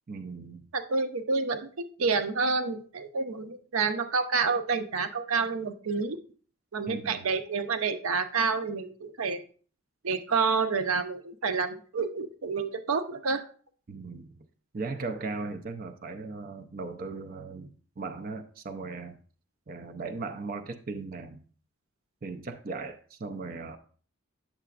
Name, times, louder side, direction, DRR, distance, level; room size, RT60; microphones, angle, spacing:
voice 1, 0.1-0.7 6.9-7.3 13.9-14.4 14.7-17.7 18.0-19.2 19.7-21.4 22.2-23.8, right 3 dB, 45° right, 7 dB, 0.5 m, -37 dB
voice 2, 0.7-1.7 2.0-6.2 6.7-9.4 10.0-13.4, right 4 dB, 85° right, 9 dB, 0.7 m, -28 dB
8.8 x 6.7 x 2.4 m, 0.43 s
head